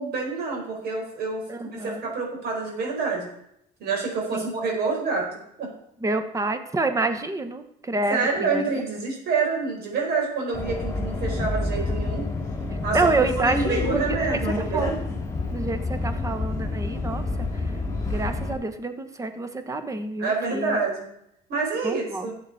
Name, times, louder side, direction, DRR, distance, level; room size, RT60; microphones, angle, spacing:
voice 1, 0.0-1.4 1.8-3.3 3.8-5.7 8.1-12.3 12.8-14.9 20.2-21.1 21.5-22.3, right 4 dB, 70° right, 0 dB, 4.6 m, -27 dB
voice 2, 1.5-2.1 4.3-4.4 6.0-8.7 12.9-14.0 14.7-15.0 15.5-17.5 18.0-20.8 21.8-22.3, right 2 dB, 20° right, 9 dB, 1.2 m, -28 dB
Subway metro underground, 10.5-18.5, left 2 dB, 20° left, 2.7 m, -28 dB
13.5 x 8.0 x 4.2 m, 0.76 s
cardioid pair, 110°, 17 cm